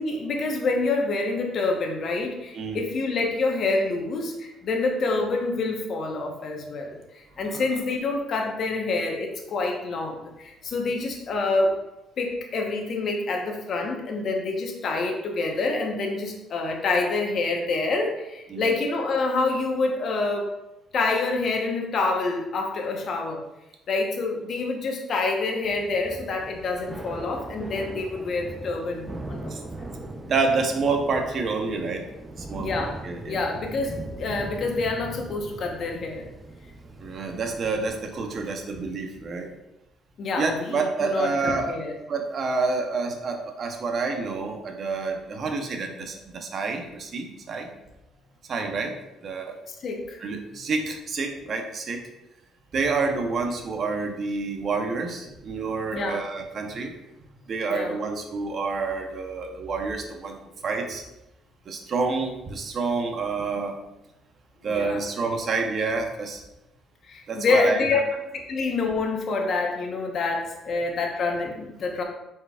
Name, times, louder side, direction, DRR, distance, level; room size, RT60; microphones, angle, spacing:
voice 1, 0.0-11.8 12.2-20.5 20.9-23.4 23.9-29.5 32.6-36.3 40.2-41.9 49.7-50.2 55.9-56.2 57.7-58.0 64.6-65.0 67.1-68.0 68.5-72.0, left 3 dB, 55° left, 2 dB, 0.9 m, -27 dB
Thunder / Rain, 25.6-38.5, right 2 dB, 20° right, 0.6 m, -40 dB
voice 2, 30.2-32.0 32.4-33.4 37.0-39.5 40.4-41.8 42.1-47.7 48.5-48.9 49.2-49.6 50.2-52.0 52.7-56.9 57.5-60.4 60.6-61.0 61.7-63.8 64.6-66.4 67.3-68.0, right 4 dB, 50° right, 4 dB, 0.7 m, -28 dB
4.6 x 4.4 x 2.3 m, 0.92 s
cardioid pair, 90°, 0 cm